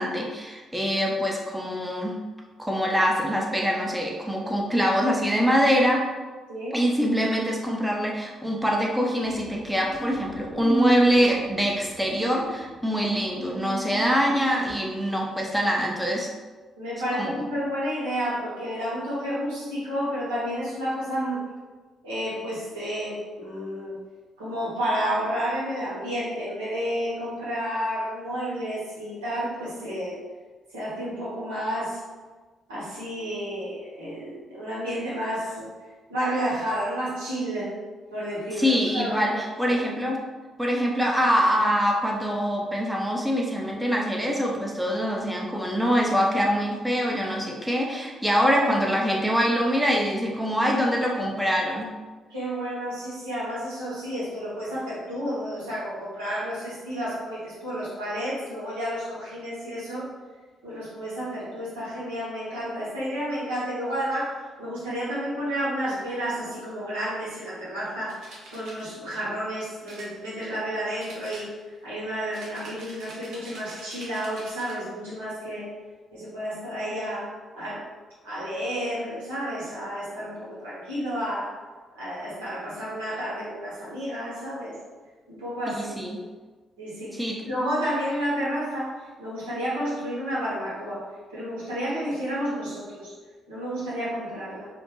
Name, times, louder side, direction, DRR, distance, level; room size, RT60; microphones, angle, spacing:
voice 1, 0.0-2.2 2.6-6.0 6.7-16.3 17.1-17.4 38.6-40.2 40.6-51.9 85.7-86.2 87.1-87.4, equal, 5° right, -1 dB, 0.6 m, -24 dB
voice 2, 6.5-6.8 16.8-21.4 22.0-23.9 24.4-30.2 30.7-32.0 32.7-35.7 36.1-37.7 38.1-39.3 39.6-39.8 48.3-48.4 52.3-60.1 60.6-68.2 68.5-71.5 71.8-75.7 76.1-77.8 78.2-81.6 81.9-84.7 85.3-86.0 86.8-91.0 91.3-93.1 93.5-94.7, equal, 75° right, -9 dB, 1.0 m, -31 dB
sound 1, 9.2-14.9, right 3 dB, 75° left, 0.8 m, -34 dB
sound 2, 68.1-68.9 69.8-70.7 71.0-71.8 72.3-74.8, right 2 dB, 60° right, 0.6 m, -45 dB
2.4 x 2.2 x 3.0 m, 1.3 s
figure-of-eight pair, 40°, 0 cm